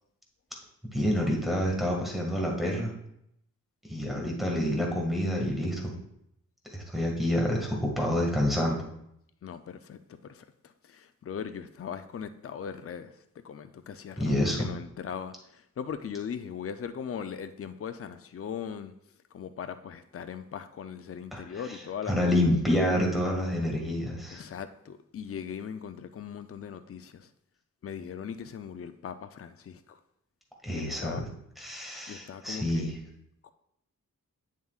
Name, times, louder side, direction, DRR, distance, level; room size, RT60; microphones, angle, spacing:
voice 1, 0.9-2.9 3.9-5.9 6.7-8.8 14.2-14.7 21.3-21.4 22.1-24.4 30.6-31.3 31.6-32.9, left 1 dB, ahead, -2 dB, 1.8 m, -28 dB
voice 2, 9.4-10.4 10.9-13.1 13.4-18.9 19.3-22.3 24.3-27.3 27.8-30.0 30.7-31.3 32.1-33.0 33.4-33.5, left 7 dB, 45° left, 10 dB, 0.5 m, -39 dB
8.7 x 7.3 x 2.4 m, 0.76 s
wide cardioid pair, 85°, 32 cm